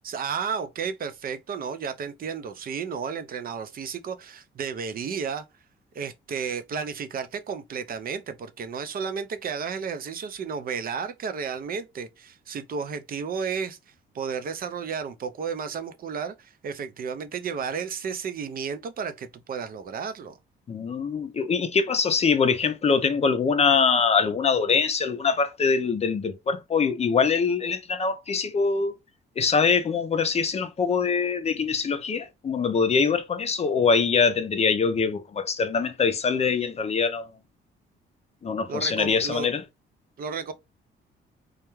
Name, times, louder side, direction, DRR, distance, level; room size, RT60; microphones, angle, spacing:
voice 1, 0.0-5.4 5.9-13.8 14.1-20.4 38.7-39.5 40.2-40.5, right 6 dB, 50° right, 0.5 m, -32 dB
voice 2, 20.7-28.9 29.4-37.3 38.4-39.6, left 5 dB, 30° left, 0.5 m, -23 dB
2.3 x 2.2 x 2.9 m
cardioid pair, 90°, 20 cm